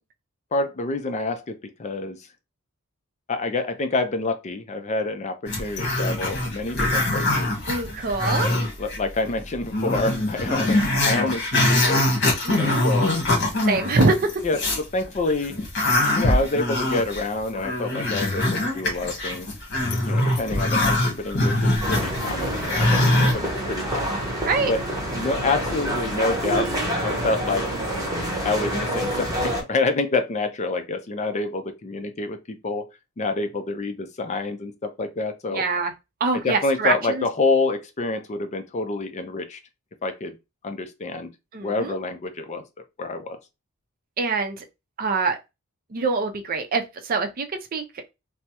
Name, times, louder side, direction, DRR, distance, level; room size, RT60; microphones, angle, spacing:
voice 1, 0.5-2.2 3.3-7.5 8.2-12.1 12.5-13.2 14.4-15.6 16.1-19.5 19.9-24.2 24.7-24.8 25.1-26.8 27.0-27.7 28.4-32.9 33.2-35.6 36.3-39.6 40.0-40.4 40.6-41.3 41.6-42.6 43.0-43.4, left 3 dB, 30° left, 0.4 m, -27 dB
Growling, 5.5-9.0 9.3-9.4 9.7-14.9 15.3-23.3, left 1 dB, 55° left, 1.2 m, -23 dB
voice 2, 7.7-8.5 12.4-12.8 13.7-14.4 24.5-24.7 35.5-35.9 36.2-37.2 41.5-41.9 44.2-44.6 45.0-45.4 45.9-47.5 47.7-47.8, right 3 dB, 40° right, 0.5 m, -24 dB
sound 1, 21.8-29.6, right 1 dB, 15° right, 0.9 m, -27 dB
3.3 x 2.0 x 2.8 m
head